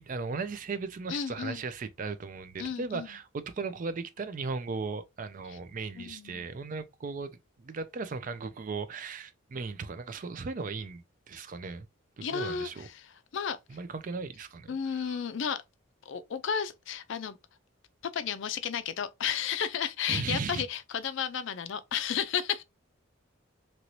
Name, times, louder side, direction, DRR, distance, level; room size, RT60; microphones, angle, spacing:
voice 1, 0.0-11.9 12.2-12.9 13.7-15.2 20.1-20.6, right 4 dB, 40° right, 0.3 m, -37 dB
voice 2, 1.1-1.6 2.6-3.1 5.5-5.6 6.0-6.5 12.2-13.6 14.7-15.6 16.1-17.4 18.1-22.6, left 7 dB, 60° left, 0.4 m, -33 dB
2.9 x 2.6 x 2.9 m
head